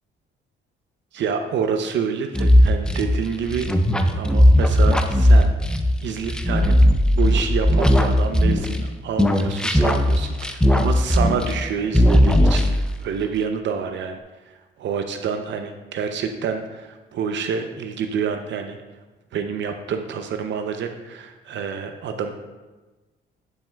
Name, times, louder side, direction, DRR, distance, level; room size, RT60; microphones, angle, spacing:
voice 1, 1.1-5.5 6.0-6.7 7.1-14.2 14.5-18.8 19.3-22.3, right 6 dB, 65° right, 7 dB, 0.6 m, -28 dB
sound 1, 2.3-8.9 9.2-11.7 11.9-13.0, left 1 dB, 5° left, 0.5 m, -17 dB
10.0 x 5.5 x 2.2 m, 1.2 s
cardioid pair, 90°, 20 cm